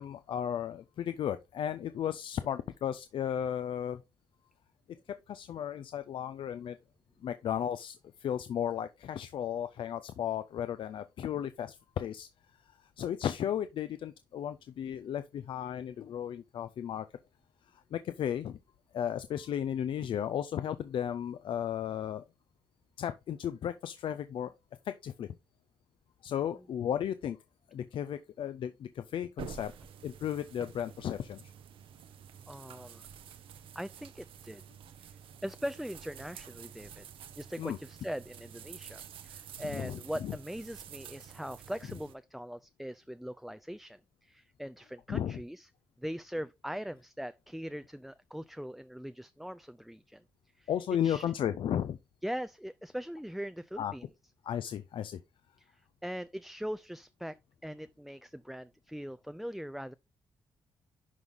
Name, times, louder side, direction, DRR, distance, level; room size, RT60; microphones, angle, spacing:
voice 1, 0.0-4.0 5.3-6.8 7.2-12.3 13.0-17.1 17.9-18.6 18.9-22.2 23.0-24.5 24.9-25.3 26.2-27.4 27.7-29.7 30.0-31.4 37.6-37.8 39.7-40.3 45.1-45.4 50.7-52.0 53.8-53.9 54.5-55.2, left 9 dB, 70° left, 0.5 m, -34 dB
voice 2, 26.4-26.7 32.5-33.0 33.8-34.6 35.0-35.2 35.4-37.1 37.4-45.7 46.0-50.2 50.6-50.7 51.0-51.3 52.2-54.0 55.6-57.4 57.6-59.9, equal, ahead, 0.3 m, -41 dB
sound 1, 29.4-42.1, right 8 dB, 80° right, 0.8 m, -49 dB
11.0 x 4.0 x 3.5 m
cardioid pair, 80°, 9 cm